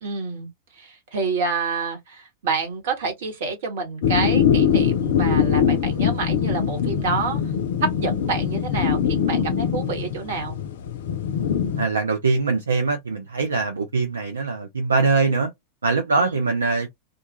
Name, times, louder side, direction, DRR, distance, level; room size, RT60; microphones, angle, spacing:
voice 1, 0.0-7.4 7.8-10.6 16.2-16.4, right 4 dB, 55° right, 1.2 m, -28 dB
sound 1, 4.0-11.8, left 8 dB, 55° left, 0.4 m, -22 dB
voice 2, 11.8-15.5 15.8-16.9, right 4 dB, 75° right, 0.5 m, -22 dB
2.4 x 2.2 x 2.9 m
figure-of-eight pair, 90°, 0 cm